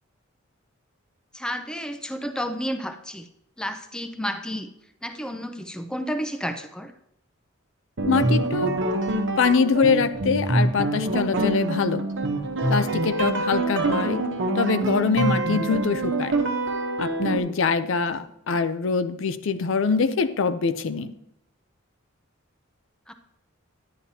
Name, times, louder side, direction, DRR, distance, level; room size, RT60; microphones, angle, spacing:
voice 1, 1.3-3.3 3.6-4.7 5.0-6.9 23.1-23.2, equal, 5° left, 7 dB, 0.5 m, -31 dB
sound 1, 8.0-17.4, right 2 dB, 65° right, 1.0 m, -25 dB
voice 2, 8.1-8.8 9.4-12.0 12.7-14.2 14.6-16.4 17.0-21.1, left 5 dB, 65° left, 11 dB, 0.5 m, -24 dB
10.5 x 9.8 x 2.8 m, 0.75 s
head